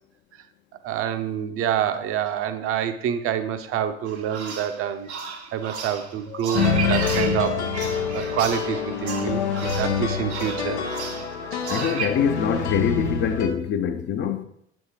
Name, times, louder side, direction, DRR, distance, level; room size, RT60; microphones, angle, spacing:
voice 1, 0.8-5.1 5.5-7.7 8.1-10.8 11.5-11.7, right 9 dB, 40° right, 0.7 m, -27 dB
sound 1, 4.1-12.1, right 6 dB, 80° right, 1.1 m, -34 dB
voice 2, 6.3-7.3 9.1-9.5 10.4-10.5 11.7-14.4, left 8 dB, 35° left, 0.7 m, -26 dB
sound 2, 6.5-13.5, left 5 dB, 80° left, 0.8 m, -26 dB
7.8 x 4.9 x 3.7 m
figure-of-eight pair, 65°, 33 cm